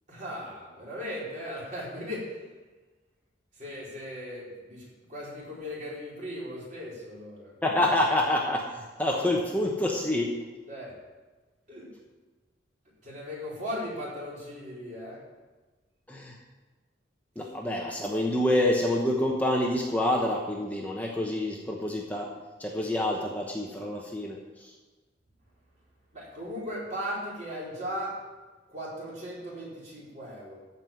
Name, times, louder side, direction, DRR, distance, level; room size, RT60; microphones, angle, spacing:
voice 1, 0.1-2.4 3.5-7.5 10.7-10.9 11.7-11.9 13.0-15.2 26.1-28.2 28.7-30.6, equal, 45° right, -6 dB, 4.5 m, -37 dB
voice 2, 7.6-10.3 16.1-16.4 17.4-22.3 22.6-24.7, left 1 dB, 10° left, -1 dB, 1.0 m, -27 dB
14.0 x 5.5 x 7.6 m, 1.2 s
head